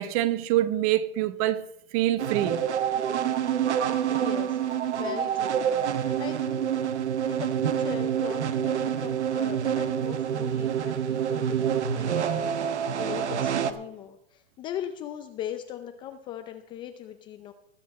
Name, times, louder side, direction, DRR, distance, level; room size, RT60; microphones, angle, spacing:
voice 1, 0.0-1.6 1.9-2.6, right 13 dB, 35° right, 0.8 m, -25 dB
sound 1, 2.2-13.7, right 9 dB, 85° right, 1.2 m, -27 dB
voice 2, 4.1-6.7 7.0-17.5, left 10 dB, 15° left, 0.4 m, -39 dB
20.0 x 8.5 x 4.1 m
hypercardioid pair, 140°, 34 cm